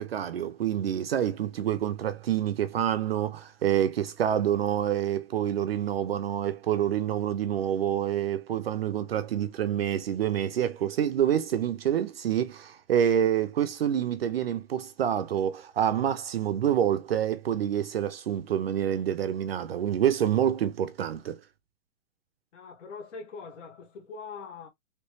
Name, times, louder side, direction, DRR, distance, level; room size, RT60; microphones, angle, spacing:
voice 1, 0.0-21.4, right 10 dB, 50° right, 0.4 m, -27 dB
voice 2, 22.5-24.7, left 5 dB, 60° left, 1.4 m, -42 dB
3.1 x 3.1 x 3.1 m
hypercardioid pair, 175°, 41 cm